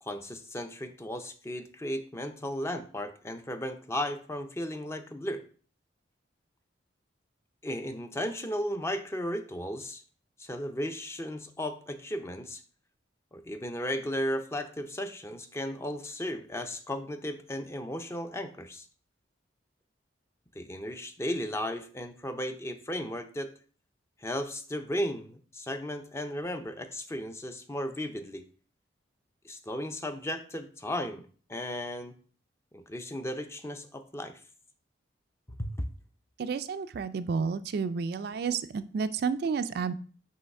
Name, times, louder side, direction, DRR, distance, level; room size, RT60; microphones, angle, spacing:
voice 1, 0.0-5.4 7.6-10.0 10.4-12.6 13.3-18.9 20.5-23.5 24.2-28.4 29.4-31.2 31.5-32.1 32.7-34.3 35.6-35.7, equal, 15° left, 8 dB, 0.5 m, -35 dB
voice 2, 36.4-39.9, right 5 dB, 55° right, 12 dB, 0.3 m, -31 dB
5.6 x 3.2 x 5.3 m, 0.43 s
head